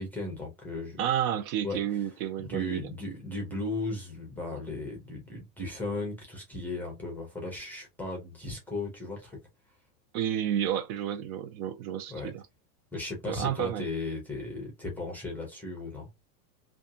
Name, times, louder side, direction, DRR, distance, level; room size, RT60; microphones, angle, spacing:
voice 1, 0.0-1.0 1.6-1.8 2.4-9.4 12.1-12.3 12.9-16.1, left 2 dB, 5° left, 0.5 m, -36 dB
voice 2, 1.0-2.8 10.1-12.4 13.3-13.9, right 10 dB, 60° right, 0.6 m, -30 dB
2.5 x 2.3 x 2.5 m
supercardioid pair, 140°, 47 cm